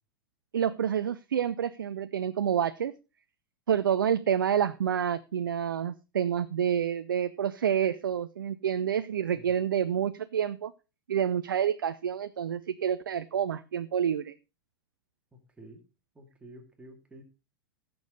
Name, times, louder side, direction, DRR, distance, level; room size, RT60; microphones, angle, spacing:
voice 1, 0.5-2.9 3.7-10.7 11.1-14.3, right 9 dB, 65° right, 12 dB, 0.5 m, -28 dB
voice 2, 16.1-17.2, right 1 dB, 10° right, 3 dB, 2.5 m, -50 dB
16.5 x 7.0 x 3.8 m, 0.29 s
figure-of-eight pair, 95°, 12 cm